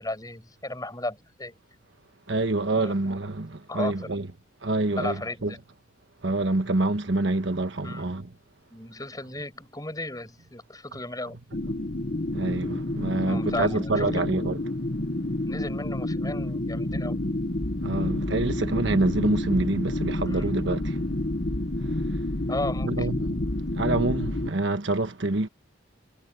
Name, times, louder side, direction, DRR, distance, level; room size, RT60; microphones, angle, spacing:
voice 1, 0.0-1.5 2.7-2.9 3.7-4.1 5.0-5.6 7.8-8.1 8.7-11.4 13.2-14.3 15.5-17.2 20.3-20.6 22.5-23.1, left 2 dB, 20° left, 7.0 m, -35 dB
voice 2, 2.3-4.3 4.6-5.5 6.2-8.3 12.3-14.6 17.8-21.0 21.8-22.2 22.8-23.4 23.7-25.5, right 2 dB, 65° right, 1.3 m, -27 dB
sound 1, 11.5-24.5, left 1 dB, 45° left, 1.4 m, -29 dB
head